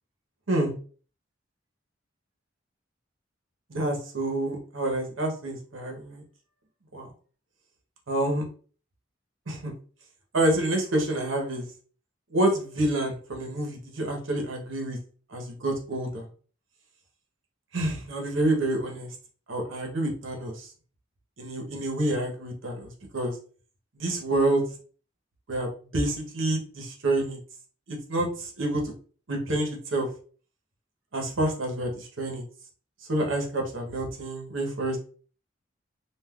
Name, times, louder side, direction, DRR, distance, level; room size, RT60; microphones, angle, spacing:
voice 1, 3.7-6.2 6.9-7.1 8.1-8.5 9.5-9.7 10.3-11.7 12.3-15.0 15.3-16.3 17.7-19.1 19.5-20.7 21.4-23.3 24.0-24.6 25.5-27.4 27.9-28.8 29.3-30.1 31.1-32.4 33.1-35.0, right 1 dB, 90° right, 1 dB, 0.9 m, -28 dB
2.4 x 2.3 x 3.5 m, 0.41 s
head